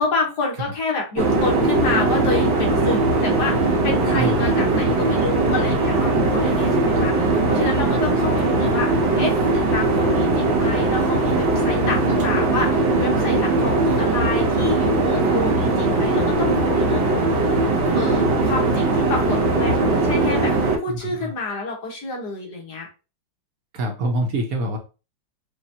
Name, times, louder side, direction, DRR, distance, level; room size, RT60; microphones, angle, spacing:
voice 1, 0.0-8.9 9.1-17.3 17.9-20.5 20.8-22.9, left 3 dB, 60° left, -1 dB, 1.8 m, -28 dB
sound 1, 1.2-20.8, right 2 dB, 80° right, 1.6 m, -20 dB
voice 2, 21.0-21.3 23.7-24.8, right 1 dB, 60° right, 3 dB, 1.1 m, -25 dB
5.0 x 2.5 x 2.8 m, 0.31 s
omnidirectional pair, 2.1 m